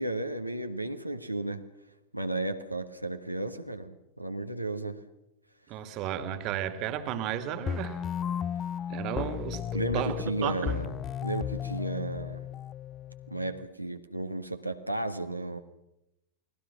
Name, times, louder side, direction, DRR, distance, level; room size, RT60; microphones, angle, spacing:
voice 1, 0.0-1.6 2.1-5.0 9.7-10.9 11.2-12.4 13.3-15.6, right 2 dB, 90° right, 6 dB, 1.4 m, -33 dB
voice 2, 5.7-8.0 8.9-9.6 9.9-10.8, right 9 dB, 40° right, 11 dB, 2.2 m, -33 dB
sound 1, 7.7-13.7, left 9 dB, 25° left, 0.7 m, -35 dB
29.0 x 20.0 x 6.0 m, 0.90 s
figure-of-eight pair, 90°, 0 cm